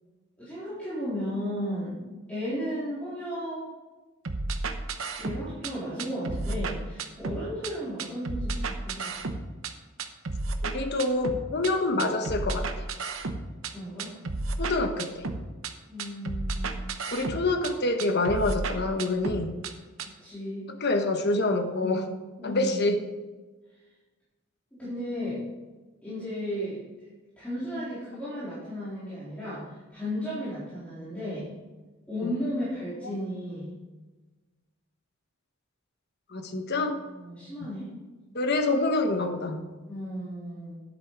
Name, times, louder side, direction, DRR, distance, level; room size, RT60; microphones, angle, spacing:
voice 1, 0.4-3.6 5.2-9.2 13.7-14.2 15.9-16.9 20.0-20.7 21.8-22.0 22.4-22.8 24.8-25.4 26.0-26.8 27.4-31.5 32.1-33.7 37.0-37.9 39.9-40.8, equal, 5° left, -13 dB, 3.9 m, -34 dB
sound 1, 4.2-5.7 6.0-7.7 8.0-9.7 10.0-11.7 12.0-13.7 14.0-15.7 16.0-17.7 18.0-19.7 20.0-20.1, right 3 dB, 70° right, 0.9 m, -32 dB
voice 2, 10.6-12.8 14.6-15.2 17.1-19.5 20.8-22.0 22.4-23.0 32.2-32.3 36.3-37.0 38.3-39.6, left 2 dB, 50° left, 5 dB, 1.2 m, -26 dB
10.5 x 8.5 x 4.8 m, 1.3 s
head